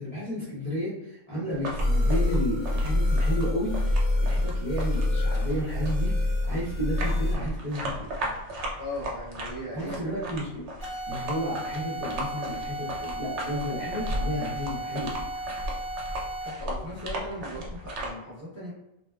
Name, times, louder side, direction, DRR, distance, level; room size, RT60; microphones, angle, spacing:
voice 1, 0.0-8.2 9.7-10.7 11.1-15.1, equal, 35° left, -10 dB, 0.6 m, -32 dB
sound 1, 1.5-18.1, right 1 dB, 65° right, 0.8 m, -36 dB
Transformers FX Machine, 1.8-7.3, left 1 dB, 65° left, 1.0 m, -25 dB
voice 2, 8.8-10.2 16.4-18.7, left 1 dB, 15° right, -8 dB, 0.6 m, -38 dB
sound 2, 10.8-16.7, right 2 dB, 85° left, 1.4 m, -36 dB
2.9 x 2.0 x 2.2 m, 0.89 s
omnidirectional pair, 1.4 m